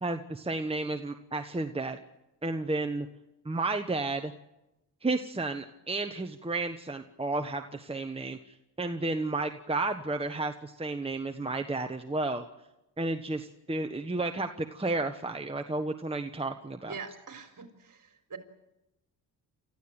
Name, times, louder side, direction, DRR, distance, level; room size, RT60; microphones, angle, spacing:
voice 1, 0.0-2.0 2.4-3.1 3.4-4.3 5.0-12.5 13.0-17.0, right 2 dB, 15° right, 6 dB, 1.2 m, -32 dB
voice 2, 16.9-18.4, right 5 dB, 50° right, 7 dB, 4.2 m, -43 dB
29.5 x 14.5 x 8.9 m, 0.92 s
cardioid pair, 90°, 40 cm